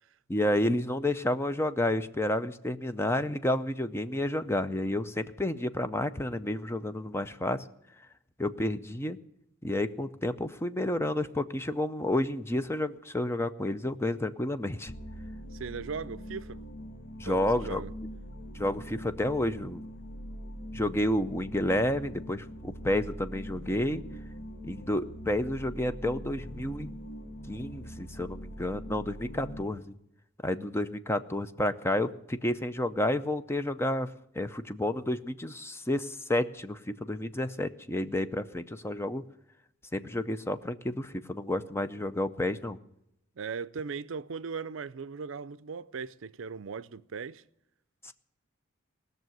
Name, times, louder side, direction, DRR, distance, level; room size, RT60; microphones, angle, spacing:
voice 1, 0.3-7.6 8.4-9.2 9.6-14.9 17.2-17.8 18.5-19.8 20.7-24.0 24.6-26.9 27.5-29.8 30.4-34.1 34.3-39.2 39.9-42.8 48.0-48.1, left 1 dB, 10° left, 0.5 m, -30 dB
sound 1, 14.9-29.6, equal, 60° left, 1.2 m, -42 dB
voice 2, 15.5-16.6 17.2-17.9 43.4-47.4, right 5 dB, 70° right, 0.5 m, -38 dB
19.0 x 6.7 x 9.2 m
head